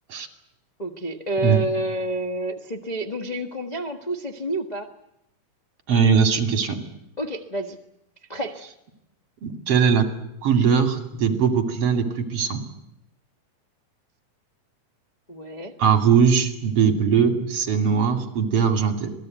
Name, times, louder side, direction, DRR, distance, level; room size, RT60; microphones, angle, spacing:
voice 1, 0.8-4.9 7.2-7.8 8.3-8.6 15.3-15.7, right 1 dB, 30° left, 2 dB, 0.7 m, -29 dB
voice 2, 5.9-6.8 9.4-10.1 10.4-12.6 15.8-19.1, right 6 dB, 50° right, 6 dB, 3.6 m, -20 dB
27.0 x 19.0 x 9.3 m, 0.83 s
omnidirectional pair, 3.6 m